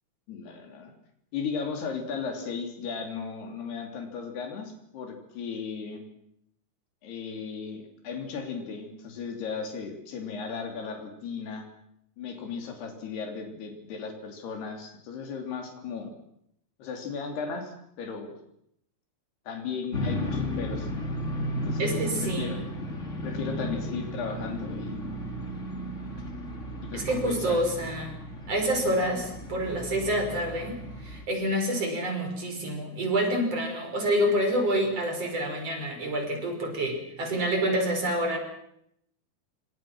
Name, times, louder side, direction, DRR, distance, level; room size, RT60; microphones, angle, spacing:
voice 1, 0.3-0.9 1.3-6.0 7.0-11.7 12.2-16.1 16.8-18.4 19.5-20.9 21.7-22.6 23.2-25.0 26.8-27.6, left 5 dB, 80° left, 4 dB, 5.2 m, -36 dB
sound 1, 19.9-31.2, equal, 20° left, 2.2 m, -34 dB
voice 2, 21.8-22.7 26.9-28.2 28.5-38.4, right 1 dB, 40° right, 4 dB, 6.9 m, -28 dB
27.5 x 25.0 x 6.2 m, 0.74 s
omnidirectional pair, 4.5 m